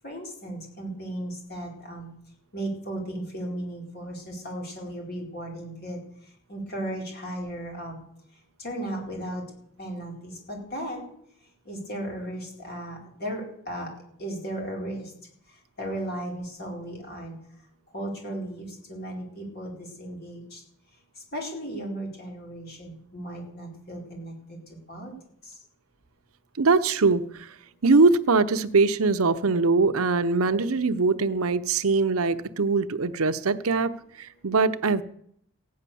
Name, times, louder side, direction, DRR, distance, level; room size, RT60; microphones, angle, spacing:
voice 1, 0.0-2.1 2.5-6.0 6.5-8.0 8.6-9.4 9.8-11.1 11.7-13.9 14.2-15.0 15.8-17.4 17.9-20.6 21.3-24.3 24.9-25.1, right 1 dB, 45° left, -1 dB, 4.6 m, -35 dB
voice 2, 26.6-27.5 27.8-35.0, right 4 dB, 80° right, 11 dB, 0.8 m, -22 dB
16.0 x 9.6 x 7.0 m, 0.70 s
head